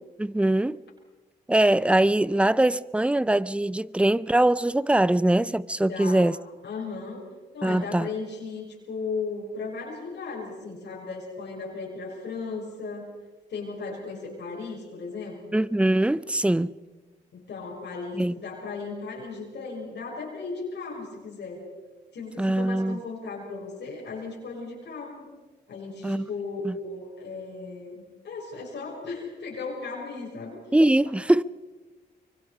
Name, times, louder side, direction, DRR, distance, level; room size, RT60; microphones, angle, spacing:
voice 1, 0.2-0.8 1.5-6.4 7.6-8.1 15.5-16.7 18.1-18.3 22.4-23.0 26.0-26.3 26.6-26.8 30.7-31.4, right 1 dB, 5° right, 0.6 m, -22 dB
voice 2, 5.9-6.3 6.6-7.2 7.5-13.1 13.5-15.6 17.3-21.7 22.1-25.3 25.7-30.6, left 4 dB, 70° left, 6.5 m, -36 dB
25.0 x 23.5 x 5.0 m
cardioid pair, 85°, 18 cm